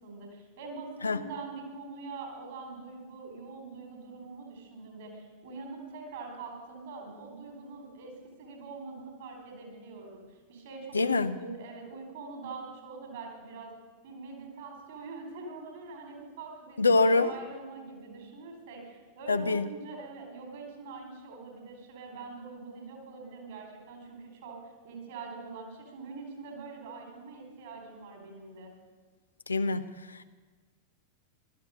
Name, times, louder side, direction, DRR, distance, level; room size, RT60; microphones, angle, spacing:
voice 1, 0.0-10.2 10.5-13.7 14.0-24.6 24.8-28.7, right 4 dB, 55° right, 3 dB, 4.3 m, -44 dB
voice 2, 10.9-11.4 16.8-17.3 19.3-19.7 29.5-30.2, left 3 dB, 75° left, 11 dB, 0.7 m, -25 dB
16.0 x 12.5 x 6.5 m, 1.4 s
figure-of-eight pair, 90°, 0 cm